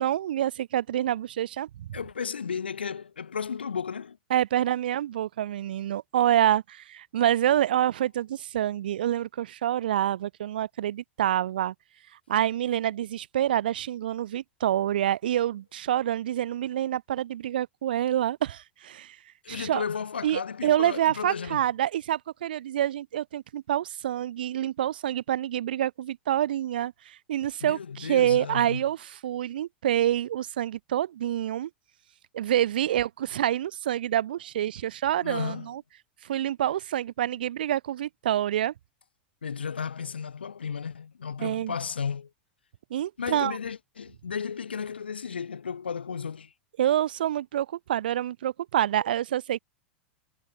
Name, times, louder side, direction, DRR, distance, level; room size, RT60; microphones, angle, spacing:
voice 1, 0.0-1.9 4.3-11.7 12.3-19.2 19.5-19.8 20.2-31.7 32.3-35.8 36.2-38.7 41.4-41.7 42.9-43.6 46.8-49.6, right 11 dB, 60° right, 1.0 m, -27 dB
voice 2, 1.9-4.2 19.4-21.6 27.6-28.8 35.2-35.7 39.4-42.3 43.2-46.5, left 6 dB, 75° left, 5.2 m, -34 dB
figure-of-eight pair, 90°, 6 cm